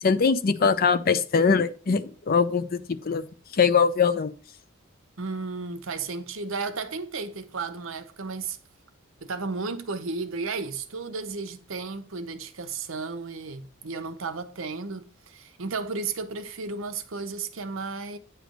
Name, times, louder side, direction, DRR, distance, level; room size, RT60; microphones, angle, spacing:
voice 1, 0.0-3.2 3.5-4.3, left 5 dB, 45° left, 0.5 m, -22 dB
voice 2, 5.2-8.6 9.2-18.2, right 4 dB, 65° right, 0.8 m, -33 dB
9.1 x 3.3 x 6.3 m
head